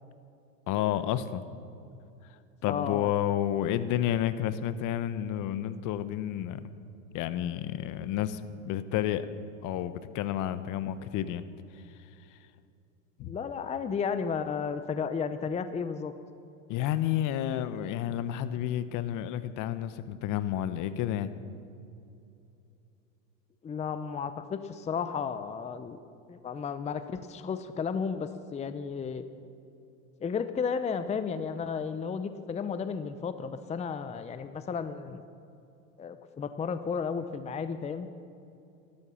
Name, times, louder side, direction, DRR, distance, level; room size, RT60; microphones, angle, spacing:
voice 1, 0.7-1.4 2.6-6.6 7.1-8.4 8.6-9.3 9.6-11.4 13.2-13.3 16.7-21.3, left 11 dB, 50° left, 13 dB, 0.9 m, -30 dB
voice 2, 2.7-3.1 13.2-16.1 23.6-26.0 26.3-29.2 30.2-35.2 36.0-38.1, left 6 dB, 15° left, 11 dB, 0.6 m, -33 dB
13.5 x 13.0 x 7.1 m, 2.7 s
supercardioid pair, 105°, 40 cm